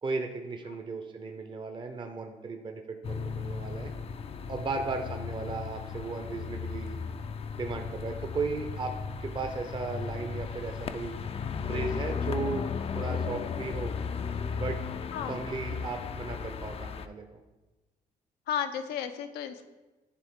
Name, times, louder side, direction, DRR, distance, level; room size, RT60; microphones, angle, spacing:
voice 1, 0.0-3.9 4.5-7.0 7.6-11.2 11.7-12.7 12.9-13.9 14.5-14.8 15.3-17.4, right 3 dB, 30° right, 5 dB, 0.6 m, -36 dB
little forest near the street with bugs, 3.0-17.1, left 6 dB, 40° left, 0.4 m, -35 dB
voice 2, 18.5-19.6, left 9 dB, 85° left, 8 dB, 0.6 m, -33 dB
10.0 x 3.5 x 3.6 m, 1.2 s
cardioid pair, 85°, 16 cm